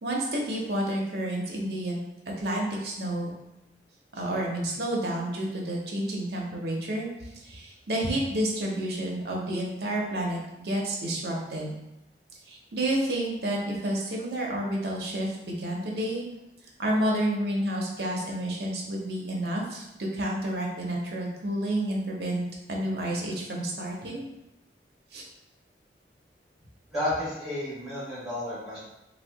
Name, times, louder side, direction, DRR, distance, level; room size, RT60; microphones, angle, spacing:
voice 1, 0.0-2.0 2.4-3.3 4.1-11.7 12.5-16.2 16.8-24.3 25.1-25.2, right 1 dB, 65° right, -2 dB, 0.7 m, -30 dB
voice 2, 26.9-28.8, left 1 dB, ahead, -11 dB, 1.4 m, -31 dB
2.7 x 2.3 x 3.4 m, 0.93 s
head